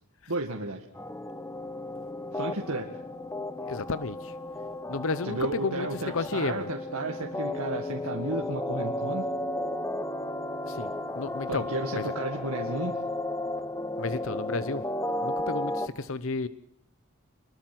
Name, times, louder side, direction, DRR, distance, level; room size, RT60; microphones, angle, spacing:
voice 1, 0.3-0.8 2.3-2.9 5.2-9.3 11.5-13.0, right 2 dB, 75° right, 1 dB, 2.0 m, -33 dB
sound 1, 0.9-15.9, left 1 dB, 15° left, 1.0 m, -34 dB
voice 2, 3.7-4.3 4.9-5.9 6.1-6.7 10.7-10.9 11.2-11.7 11.9-12.0 14.0-14.8 15.2-16.5, left 3 dB, 60° left, 14 dB, 0.9 m, -32 dB
26.0 x 22.0 x 6.1 m, 0.70 s
head